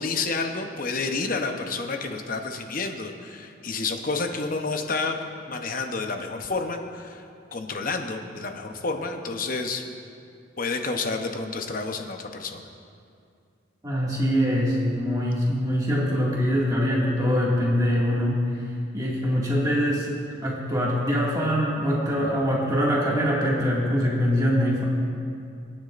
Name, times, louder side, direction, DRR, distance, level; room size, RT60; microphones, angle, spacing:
voice 1, 0.0-5.2 5.5-7.2 7.5-9.8 10.6-12.6, left 3 dB, 45° left, 4 dB, 0.8 m, -29 dB
voice 2, 13.8-18.4 18.9-24.8, equal, 20° right, -5 dB, 2.0 m, -23 dB
22.5 x 9.6 x 2.5 m, 2.4 s
head